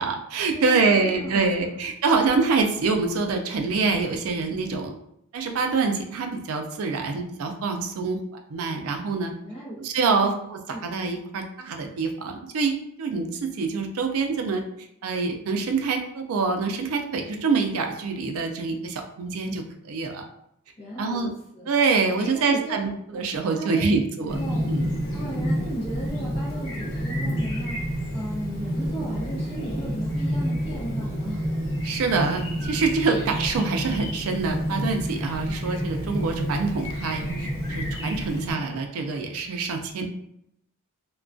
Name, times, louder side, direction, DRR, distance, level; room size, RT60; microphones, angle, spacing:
voice 1, 0.0-5.0 5.3-8.2 8.5-9.3 9.8-14.6 15.0-20.3 21.0-21.3 21.7-24.4 24.7-25.0 31.8-40.1, right 4 dB, 70° right, 4 dB, 0.4 m, -25 dB
voice 2, 0.5-1.8 9.4-10.9 20.8-21.7 22.2-22.8 23.1-23.2 23.6-24.0 24.3-24.7 25.1-31.4, right 1 dB, 25° left, -6 dB, 0.7 m, -36 dB
Chirp tweet, 24.3-38.5, equal, 45° left, 1.3 m, -29 dB
2.3 x 2.2 x 2.5 m, 0.76 s
head